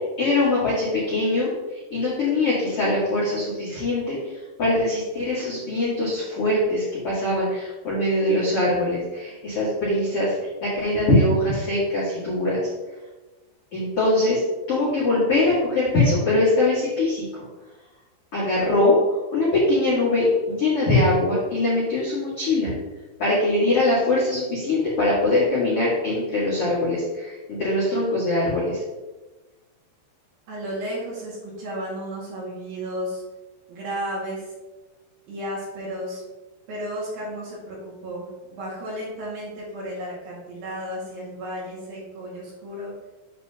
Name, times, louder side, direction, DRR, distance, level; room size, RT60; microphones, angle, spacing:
voice 1, 0.2-1.5 1.9-4.2 4.6-10.3 10.6-12.6 13.7-14.4 14.7-17.2 18.3-22.7 23.2-28.8, left 2 dB, 65° left, -8 dB, 1.4 m, -22 dB
voice 2, 30.5-33.2 33.7-34.5 35.3-36.2 36.7-42.9, equal, 55° right, -6 dB, 3.3 m, -33 dB
8.1 x 6.8 x 2.8 m, 1.2 s
omnidirectional pair, 5.7 m